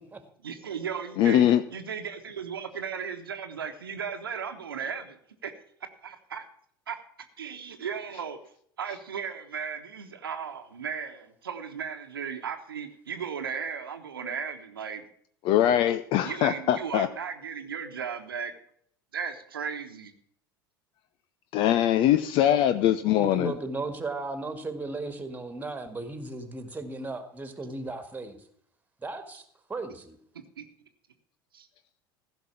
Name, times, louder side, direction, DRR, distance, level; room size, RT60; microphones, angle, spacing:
voice 1, 0.4-1.4 1.7-5.5 6.0-6.4 6.9-7.0 7.4-8.4 8.8-15.0 16.2-18.5 19.1-20.1 30.6-30.7 31.5-31.7, right 7 dB, 75° right, 6 dB, 1.2 m, -36 dB
voice 2, 1.2-1.6 15.4-17.1 21.5-23.5, left 11 dB, 45° left, 12 dB, 0.7 m, -22 dB
voice 3, 23.2-28.4 29.0-29.4 29.7-30.2, right 2 dB, 15° right, 9 dB, 2.0 m, -35 dB
15.5 x 6.0 x 7.1 m, 0.64 s
figure-of-eight pair, 70°, 12 cm